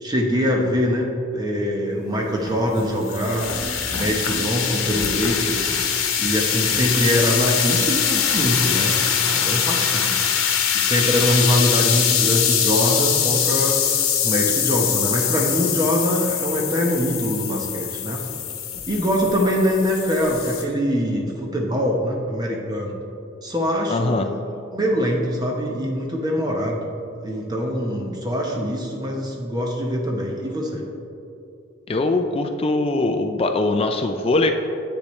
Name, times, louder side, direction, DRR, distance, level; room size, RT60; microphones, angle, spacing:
voice 1, 0.0-1.1 1.3-3.5 3.9-5.7 6.2-10.2 10.7-13.8 14.2-18.2 18.9-23.0 23.4-24.3 24.7-26.8 27.2-30.8, equal, 20° right, 0 dB, 1.0 m, -23 dB
sound 1, 2.4-20.6, left 8 dB, 85° left, 1.0 m, -23 dB
voice 2, 23.9-24.3 31.9-34.5, left 2 dB, 30° left, 6 dB, 0.4 m, -21 dB
10.0 x 8.2 x 3.2 m, 2.8 s
head